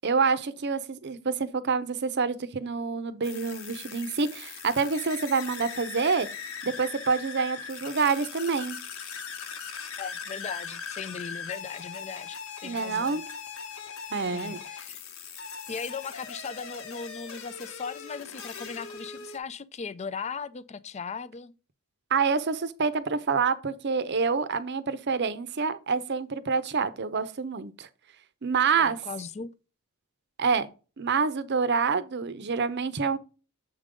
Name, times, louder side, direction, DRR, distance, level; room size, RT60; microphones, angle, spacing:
voice 1, 0.0-6.3 6.6-8.8 12.6-13.2 14.1-14.6 22.1-27.9 28.4-29.0 30.4-30.7 31.0-33.2, right 5 dB, 50° right, 0.6 m, -27 dB
sound 1, 3.2-19.4, left 6 dB, 65° left, 1.1 m, -40 dB
voice 2, 10.0-13.2 14.3-15.0 15.7-21.5 28.8-29.5, left 5 dB, 30° left, 0.3 m, -38 dB
7.4 x 3.7 x 4.9 m
head